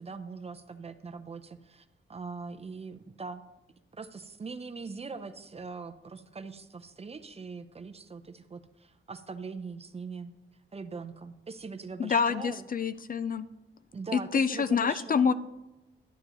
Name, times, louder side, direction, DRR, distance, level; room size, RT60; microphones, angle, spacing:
voice 1, 0.0-3.4 3.9-10.3 10.7-12.7 13.9-15.3, right 4 dB, 30° right, 10 dB, 0.5 m, -42 dB
voice 2, 12.0-13.5 14.1-15.3, left 6 dB, 45° left, 14 dB, 0.4 m, -27 dB
11.0 x 9.1 x 3.0 m, 1.0 s
wide cardioid pair, 145°, 21 cm